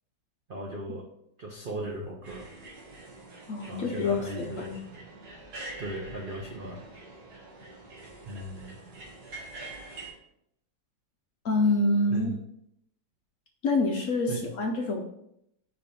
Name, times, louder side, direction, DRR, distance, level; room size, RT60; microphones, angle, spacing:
voice 1, 0.5-1.1 1.4-2.5 3.7-4.8 5.8-6.9 8.2-8.8 12.1-12.4 14.3-14.4, right 1 dB, 75° right, 0 dB, 0.4 m, -37 dB
sound 1, 2.2-10.1, right 2 dB, 60° right, 1.7 m, -45 dB
voice 2, 3.5-4.8 11.4-12.3 13.6-15.0, left 2 dB, 65° left, 2 dB, 0.8 m, -26 dB
5.1 x 4.5 x 4.1 m, 0.77 s
omnidirectional pair, 2.0 m